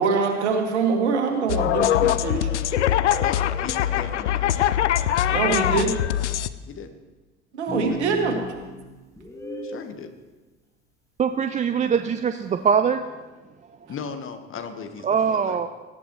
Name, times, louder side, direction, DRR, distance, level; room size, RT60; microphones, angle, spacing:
voice 1, 0.0-2.5 5.3-6.0 7.5-8.4, right 4 dB, 70° right, 3 dB, 2.0 m, -24 dB
sound 1, 1.5-6.5, left 11 dB, 75° left, 0.5 m, -22 dB
voice 2, 3.2-4.7 6.6-6.9 7.9-8.0 9.6-10.1 13.9-15.7, left 6 dB, 35° left, 8 dB, 1.4 m, -37 dB
sound 2, 7.7-9.9, left 1 dB, 10° left, 1.8 m, -36 dB
voice 3, 11.2-13.0 15.0-15.7, right 7 dB, 20° right, 10 dB, 0.5 m, -22 dB
18.5 x 14.5 x 3.1 m, 1.2 s
figure-of-eight pair, 60°, 35 cm